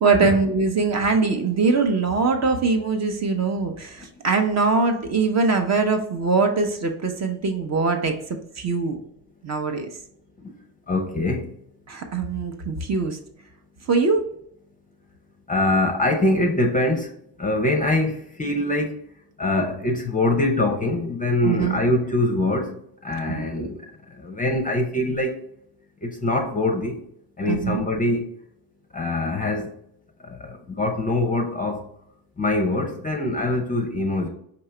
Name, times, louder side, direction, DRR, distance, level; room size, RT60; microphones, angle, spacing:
voice 1, 0.0-8.1 8.6-9.0 9.4-9.9 11.9-13.2 13.9-14.2 21.4-21.8 23.3-23.7 27.5-27.8, right 4 dB, 35° right, 0.7 m, -22 dB
voice 2, 10.9-11.5 15.5-17.1 17.4-18.1 18.4-19.0 19.4-22.8 23.0-23.8 24.2-25.3 26.0-27.0 27.4-28.2 28.9-29.7 30.3-31.8 32.4-34.3, left 2 dB, 15° left, 0.6 m, -23 dB
4.5 x 2.9 x 3.2 m
hypercardioid pair, 70°, 48 cm